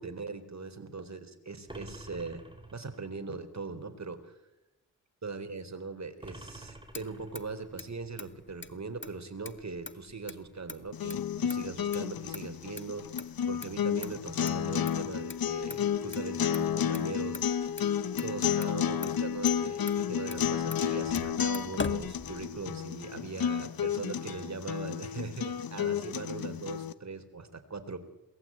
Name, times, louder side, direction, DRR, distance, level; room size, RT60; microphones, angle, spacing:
voice 1, 0.0-2.5 2.7-4.3 5.2-13.1 13.5-17.7 18.2-28.0, right 4 dB, 50° right, 8 dB, 4.0 m, -40 dB
sound 1, 1.7-3.1 6.2-7.7, right 1 dB, 15° right, 5.0 m, -48 dB
Motor vehicle (road), 6.6-22.8, left 3 dB, 30° left, 1.9 m, -45 dB
sound 2, 10.9-26.9, left 8 dB, 75° left, 1.2 m, -31 dB
22.5 x 19.0 x 8.9 m, 1.0 s
cardioid pair, 40°, 36 cm